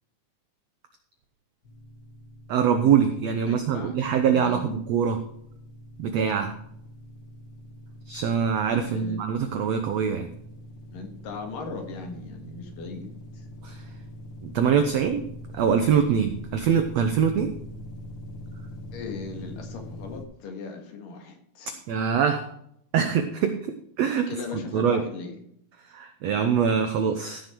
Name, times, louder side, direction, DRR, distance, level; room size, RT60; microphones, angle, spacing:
sound 1, 1.6-20.3, left 1 dB, 50° left, 1.4 m, -43 dB
voice 1, 2.5-5.2 6.0-6.6 8.1-10.3 13.6-13.8 14.4-15.3 15.5-17.5 21.9-22.5 22.9-23.6 24.0-25.0 25.9-27.4, right 7 dB, 85° right, 7 dB, 1.4 m, -24 dB
voice 2, 3.4-4.6 8.8-9.4 10.9-13.1 13.3-13.5 18.9-21.8 24.3-25.4, left 4 dB, 70° left, 4 dB, 3.3 m, -38 dB
15.5 x 6.8 x 4.6 m, 0.71 s
omnidirectional pair, 4.2 m